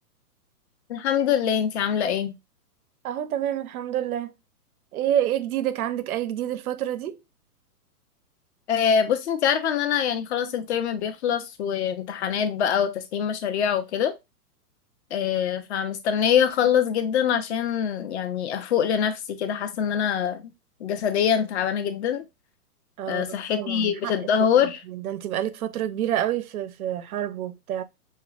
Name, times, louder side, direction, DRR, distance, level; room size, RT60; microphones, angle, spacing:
voice 1, 0.9-2.3 8.7-14.1 15.1-20.4 20.8-22.2 23.1-24.8, left 8 dB, 45° left, 0.6 m, -24 dB
voice 2, 3.0-4.3 4.9-7.2 23.0-24.1 24.5-27.8, right 11 dB, 65° right, 0.6 m, -28 dB
5.4 x 2.1 x 2.4 m
hypercardioid pair, 135°, 47 cm